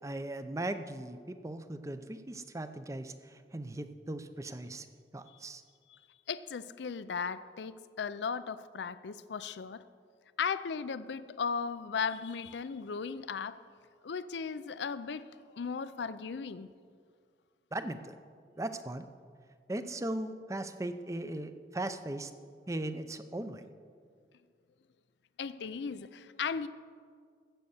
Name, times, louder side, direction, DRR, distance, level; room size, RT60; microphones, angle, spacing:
voice 1, 0.0-4.9 5.1-5.6 17.7-18.1 18.6-19.1 19.7-22.3 22.7-23.6, right 1 dB, 15° right, 10 dB, 0.6 m, -38 dB
voice 2, 6.3-9.8 10.4-13.6 14.0-15.3 15.5-16.7 25.4-26.7, left 6 dB, 80° left, 14 dB, 0.5 m, -36 dB
14.5 x 7.9 x 7.1 m, 2.1 s
head